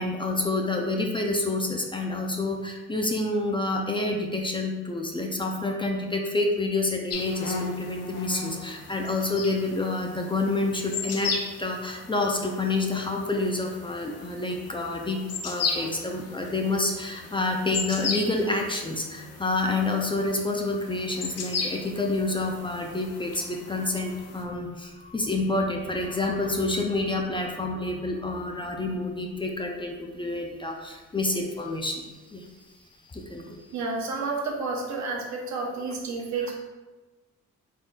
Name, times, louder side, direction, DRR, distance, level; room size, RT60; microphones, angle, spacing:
voice 1, 0.0-15.2 15.4-32.5 33.1-33.6, left 2 dB, 15° left, 1 dB, 0.4 m, -28 dB
sound 1, 7.1-24.4, left 4 dB, 55° left, 0.7 m, -36 dB
voice 2, 33.7-36.6, right 3 dB, 70° right, 0 dB, 0.9 m, -30 dB
4.2 x 3.6 x 2.4 m, 1.2 s
cardioid pair, 90°, 30 cm